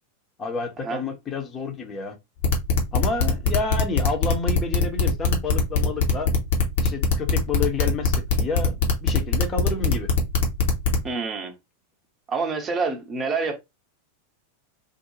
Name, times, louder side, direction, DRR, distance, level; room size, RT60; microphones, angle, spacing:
voice 1, 0.4-2.2 2.9-6.3 6.8-10.1, left 4 dB, 25° left, 0.7 m, -29 dB
sound 1, 2.4-11.1, left 5 dB, 55° left, 0.8 m, -21 dB
voice 2, 11.0-11.5 12.3-13.6, right 4 dB, 20° right, 0.7 m, -27 dB
2.5 x 2.0 x 3.1 m
figure-of-eight pair, 90°, 0 cm